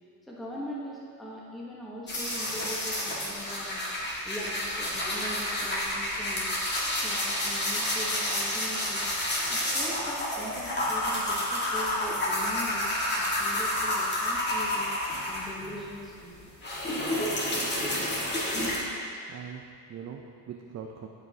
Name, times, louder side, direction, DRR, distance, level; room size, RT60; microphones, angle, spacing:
voice 1, 0.3-3.9 4.2-12.9 13.2-16.4, equal, ahead, -5 dB, 1.1 m, -41 dB
sound 1, 2.1-15.8 16.2-18.8, left 1 dB, 25° left, 1.8 m, -30 dB
voice 2, 19.3-21.1, right 7 dB, 40° right, 1 dB, 0.6 m, -42 dB
12.5 x 5.2 x 2.8 m, 2.3 s
cardioid pair, 105°, 40 cm